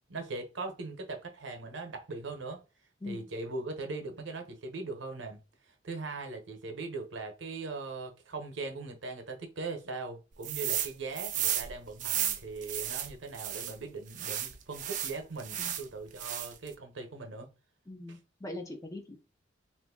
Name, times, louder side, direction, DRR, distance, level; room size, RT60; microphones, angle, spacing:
voice 1, 0.1-2.6 3.1-5.4 5.8-17.5 18.1-18.2, right 3 dB, 75° right, 0.8 m, -40 dB
sound 1, 10.4-10.9 11.1-13.7 14.1-15.8 16.2-16.7, right 10 dB, 40° right, 0.4 m, -33 dB
voice 2, 17.9-19.2, left 2 dB, 15° left, 0.5 m, -42 dB
3.0 x 2.5 x 3.6 m
head